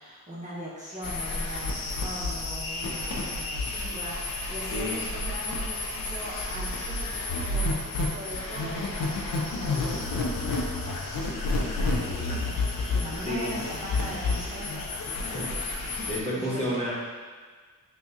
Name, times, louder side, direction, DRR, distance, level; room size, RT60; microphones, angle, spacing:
voice 1, 0.0-16.8, equal, 20° right, -8 dB, 0.9 m, -41 dB
sound 1, 1.0-16.2, left 2 dB, 85° left, 0.6 m, -30 dB
voice 2, 15.8-16.9, equal, 20° left, -7 dB, 1.3 m, -31 dB
5.9 x 2.4 x 2.8 m, 1.5 s
cardioid pair, 70°, 34 cm